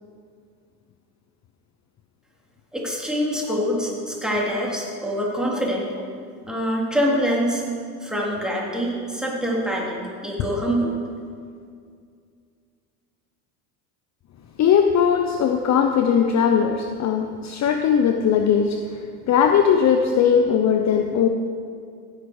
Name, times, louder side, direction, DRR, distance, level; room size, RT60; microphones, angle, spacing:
voice 1, 2.7-5.9 6.5-7.6 8.0-10.0 10.2-10.9, equal, ahead, -4 dB, 3.7 m, -25 dB
voice 2, 14.6-21.3, left 7 dB, 35° left, 5 dB, 0.8 m, -19 dB
16.0 x 9.6 x 4.8 m, 2.3 s
hypercardioid pair, 80°, 48 cm